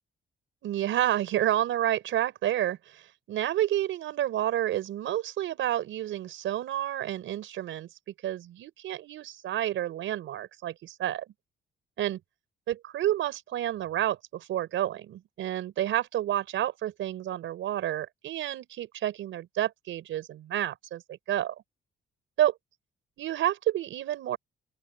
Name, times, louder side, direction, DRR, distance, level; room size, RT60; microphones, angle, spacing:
voice 1, 0.6-7.9 8.2-11.2 12.0-12.2 12.7-21.5 22.4-22.5 23.2-24.4, right 12 dB, 80° right, 5.1 m, -30 dB
open air
cardioid pair, 90°, 20 cm